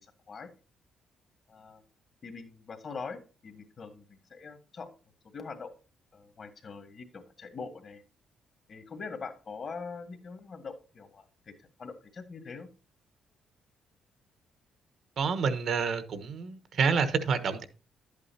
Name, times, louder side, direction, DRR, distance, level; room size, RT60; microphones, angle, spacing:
voice 1, 0.0-0.5 1.5-1.8 2.2-4.9 5.3-5.7 6.1-8.0 8.7-12.7, left 4 dB, 45° left, 1.7 m, -43 dB
voice 2, 15.2-17.6, right 5 dB, 60° right, 1.1 m, -28 dB
11.0 x 8.4 x 2.8 m
cardioid pair, 90°, 0 cm